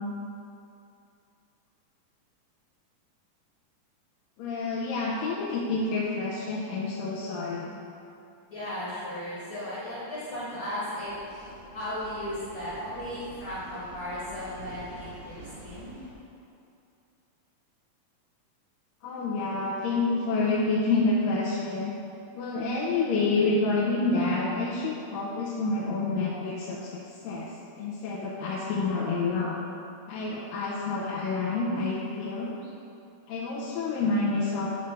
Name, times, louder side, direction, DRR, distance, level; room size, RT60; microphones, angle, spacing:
voice 1, 4.4-7.8 19.0-21.9 22.3-27.5 27.8-29.6 30.1-32.5 33.3-34.7, left 3 dB, 85° left, -6 dB, 2.4 m, -28 dB
voice 2, 8.5-11.1 11.7-15.3 15.6-15.9, left 1 dB, 50° left, -10 dB, 1.6 m, -35 dB
sound 1, 11.0-16.1, right 2 dB, 60° right, 2.2 m, -47 dB
8.0 x 3.2 x 5.9 m, 2.6 s
omnidirectional pair, 3.9 m